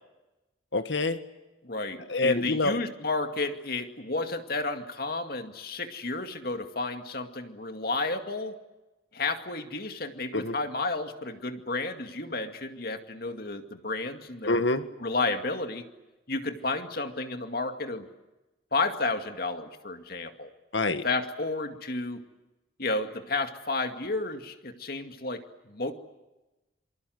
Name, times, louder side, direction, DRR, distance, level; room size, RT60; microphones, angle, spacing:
voice 1, 0.7-1.2 2.1-2.8 10.3-10.6 14.4-14.9 20.7-21.1, left 2 dB, 75° left, 10 dB, 1.8 m, -26 dB
voice 2, 1.6-8.6 9.1-14.6 15.0-15.9 16.3-18.1 18.7-20.5 21.0-22.2 22.8-25.4 25.7-25.9, left 3 dB, 50° left, 6 dB, 2.3 m, -32 dB
27.0 x 25.5 x 8.0 m, 1.0 s
head